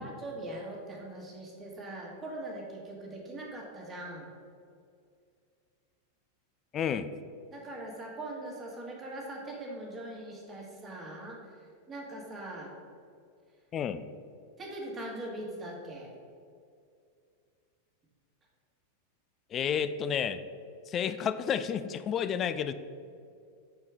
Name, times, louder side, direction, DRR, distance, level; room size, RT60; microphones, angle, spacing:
voice 1, 0.0-4.3 7.5-12.7 14.6-16.1, right 1 dB, 20° right, -2 dB, 1.5 m, -41 dB
voice 2, 6.7-7.1 13.7-14.0 19.5-20.4 20.9-22.7, left 8 dB, 30° left, 12 dB, 0.3 m, -30 dB
5.7 x 4.5 x 4.8 m, 2.3 s
figure-of-eight pair, 90°, 0 cm